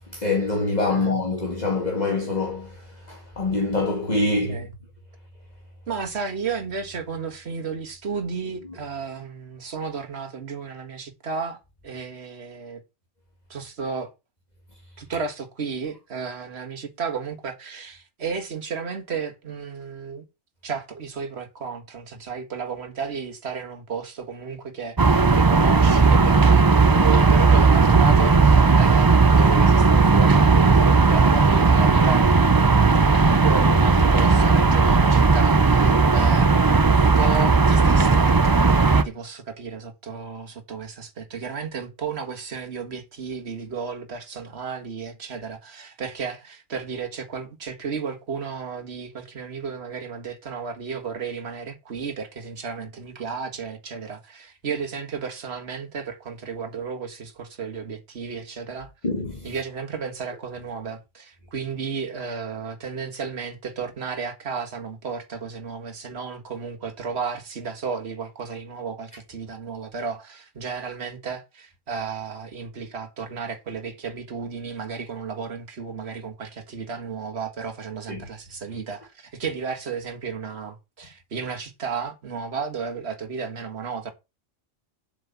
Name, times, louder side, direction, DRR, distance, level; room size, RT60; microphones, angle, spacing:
voice 1, 0.1-2.8 3.1-4.6 35.8-36.1 59.0-59.5 78.1-78.2, left 2 dB, 35° left, 1.8 m, -25 dB
voice 2, 4.2-4.7 5.9-12.8 13.5-14.1 15.0-20.2 20.6-32.3 33.4-36.6 36.9-58.9 59.4-84.1, right 5 dB, 55° right, 1.8 m, -33 dB
sound 1, 25.0-39.0, right 4 dB, 35° right, 0.3 m, -16 dB
7.7 x 4.9 x 6.9 m
omnidirectional pair, 1.3 m